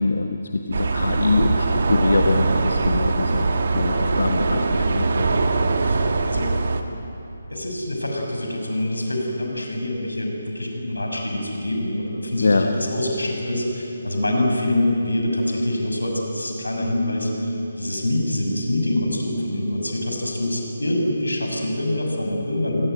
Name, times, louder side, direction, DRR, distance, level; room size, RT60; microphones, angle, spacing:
voice 1, 0.0-3.5 3.7-5.4 12.4-12.7, left 3 dB, 60° left, 5 dB, 1.4 m, -23 dB
sound 1, 0.7-6.8, right 3 dB, 50° right, 1.7 m, -22 dB
voice 2, 5.8-6.5 7.5-22.9, left 1 dB, 80° left, 1 dB, 6.4 m, -25 dB
27.5 x 18.5 x 9.3 m, 2.9 s
figure-of-eight pair, 145°, 0 cm